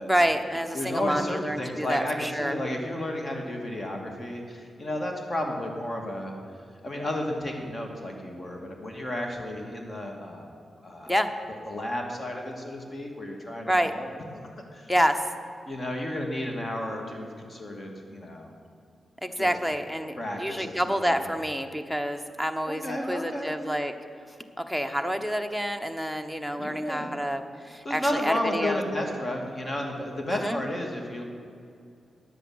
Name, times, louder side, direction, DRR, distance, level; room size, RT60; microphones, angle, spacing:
voice 1, 0.0-2.6 11.1-11.3 13.6-13.9 14.9-15.2 19.2-23.9 24.6-28.8 30.3-30.6, equal, 10° left, 8 dB, 1.0 m, -28 dB
voice 2, 0.7-6.3 6.8-10.5 10.8-11.1 11.7-14.1 14.7-14.9 15.7-18.5 19.4-19.5 20.2-21.2 22.7-23.6 26.6-27.2 27.8-31.2, left 1 dB, 40° left, 2 dB, 2.3 m, -32 dB
10.0 x 8.0 x 7.8 m, 2.4 s
cardioid pair, 55°, 0 cm